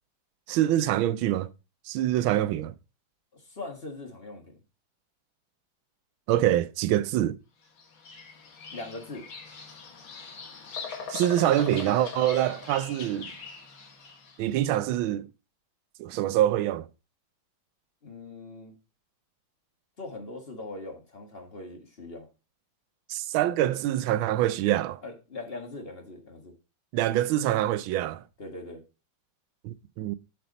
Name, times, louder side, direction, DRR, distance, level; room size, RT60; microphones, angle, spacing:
voice 1, 0.5-1.5 1.9-2.7 6.3-7.4 11.1-13.3 14.4-15.3 16.0-16.9 23.1-25.0 26.9-28.2 29.6-30.2, right 13 dB, 90° right, 1.4 m, -25 dB
voice 2, 3.3-4.6 8.7-9.3 18.0-18.7 20.0-22.3 25.0-26.5 28.4-28.8, left 2 dB, 30° left, 1.6 m, -41 dB
Bird vocalization bird call bird song, 7.8-14.4, left 5 dB, 75° left, 2.4 m, -41 dB
7.8 x 7.0 x 4.0 m
omnidirectional pair, 2.1 m